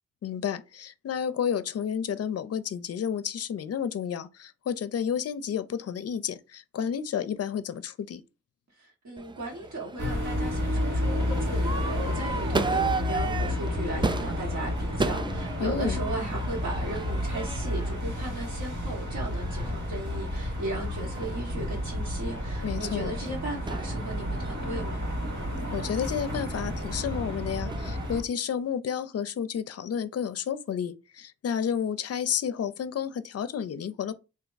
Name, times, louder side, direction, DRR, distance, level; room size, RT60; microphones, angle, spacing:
voice 1, 0.2-8.2 15.6-16.0 22.6-23.1 25.7-34.1, left 8 dB, 55° left, 0.4 m, -31 dB
voice 2, 8.8-25.0, right 2 dB, 70° right, 1.2 m, -37 dB
Crowd / Fireworks, 9.2-28.2, right 4 dB, 15° right, 0.3 m, -36 dB
sound 1, 10.0-28.2, left 1 dB, 85° right, 1.6 m, -31 dB
3.4 x 2.6 x 3.9 m
wide cardioid pair, 90°, 29 cm